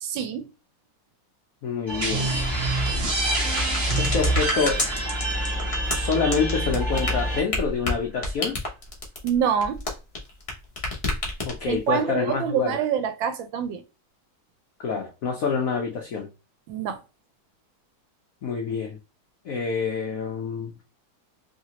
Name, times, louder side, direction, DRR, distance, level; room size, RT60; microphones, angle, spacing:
voice 1, 0.0-0.5 9.2-9.8 11.7-13.8 16.7-17.0, right 8 dB, 75° right, 1.3 m, -26 dB
voice 2, 1.6-2.3 4.0-4.8 5.9-8.6 11.4-12.8 14.8-16.3 18.4-19.0 19.4-20.7, left 5 dB, 80° left, 0.7 m, -27 dB
sound 1, 1.9-7.4, equal, 15° right, 0.8 m, -29 dB
sound 2, 2.0-7.5, right 2 dB, 45° right, 0.8 m, -28 dB
sound 3, 2.8-10.5 10.8-11.8, left 2 dB, 50° left, 0.4 m, -29 dB
3.2 x 2.9 x 2.8 m
omnidirectional pair, 2.2 m